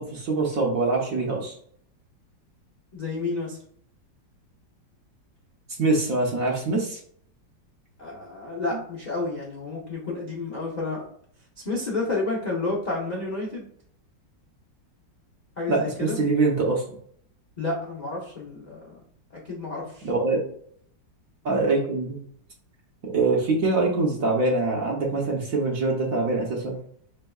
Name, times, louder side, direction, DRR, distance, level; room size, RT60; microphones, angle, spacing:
voice 1, 0.0-1.5 5.8-7.0 15.7-16.8 20.0-20.4 21.4-22.2 23.0-26.8, right 3 dB, 60° right, -1 dB, 1.0 m, -24 dB
voice 2, 2.9-3.6 8.0-11.1 11.6-13.7 15.6-16.2 17.6-19.1 19.3-20.1, left 3 dB, 60° left, -4 dB, 0.4 m, -30 dB
4.2 x 3.5 x 2.3 m, 0.63 s
omnidirectional pair, 2.0 m